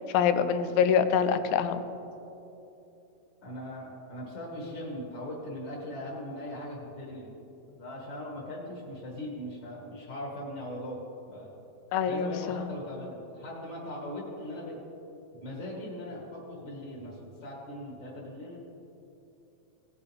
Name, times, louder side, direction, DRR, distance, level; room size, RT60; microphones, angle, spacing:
voice 1, 0.1-1.8 11.9-12.6, left 7 dB, 85° left, 11 dB, 2.4 m, -25 dB
voice 2, 3.4-7.3 7.8-11.0 11.3-11.5 12.1-14.8 15.3-18.6, left 1 dB, 40° left, -4 dB, 1.9 m, -39 dB
18.0 x 8.2 x 3.4 m, 2.9 s
omnidirectional pair, 4.2 m